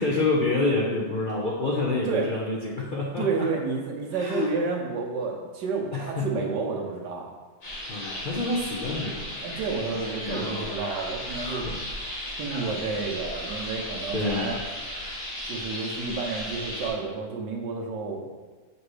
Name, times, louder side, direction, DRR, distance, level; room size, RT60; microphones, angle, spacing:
voice 1, 0.0-3.5 4.1-4.5 5.9-6.5 7.9-9.4 10.2-10.6 11.6-11.7 14.1-14.5, left 2 dB, 50° left, -5 dB, 0.6 m, -27 dB
voice 2, 3.2-7.3 9.4-11.7 12.4-14.6 15.5-18.2, right 4 dB, 85° right, 1 dB, 1.5 m, -30 dB
sound 1, 7.6-16.9, left 1 dB, 75° left, 2.4 m, -35 dB
7.0 x 3.0 x 4.8 m, 1.3 s
omnidirectional pair, 1.8 m